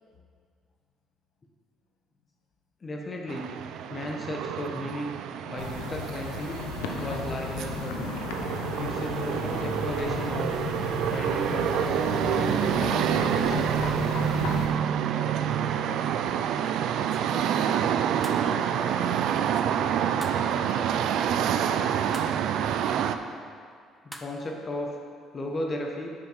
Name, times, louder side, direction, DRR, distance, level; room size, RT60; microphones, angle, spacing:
voice 1, 2.8-3.5 3.9-5.1 5.5-6.6 7.0-8.2 8.8-10.5 11.1-14.3 24.0-24.9 25.3-26.1, left 1 dB, 35° left, 0 dB, 1.1 m, -35 dB
sound 1, 3.3-23.2, right 9 dB, 70° right, 0.3 m, -27 dB
sound 2, 5.6-14.7, left 5 dB, 80° left, 0.7 m, -34 dB
voice 2, 15.1-18.2 18.4-22.2, left 3 dB, 65° left, 1 dB, 1.0 m, -46 dB
sound 3, 18.2-18.5 20.2-20.5 22.1-22.4 24.1-24.4, right 1 dB, 5° right, 0.8 m, -42 dB
9.5 x 5.5 x 4.1 m, 2.2 s
hypercardioid pair, 60°, 0 cm